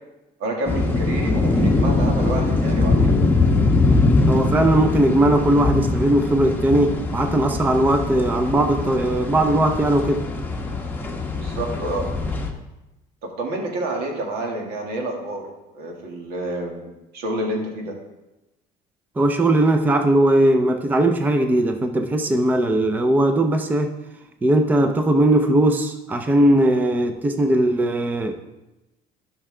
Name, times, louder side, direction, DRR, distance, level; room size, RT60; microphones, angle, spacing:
voice 1, 0.4-3.2 11.3-12.1 13.2-15.5 15.7-18.0, right 2 dB, 75° right, 1 dB, 1.9 m, -29 dB
sound 1, 0.6-12.5, left 3 dB, 10° left, 1.0 m, -22 dB
voice 2, 4.3-10.3 19.2-23.9 24.4-28.4, right 1 dB, 10° right, 6 dB, 0.5 m, -19 dB
12.0 x 5.9 x 3.3 m, 0.99 s
cardioid pair, 135°, 16 cm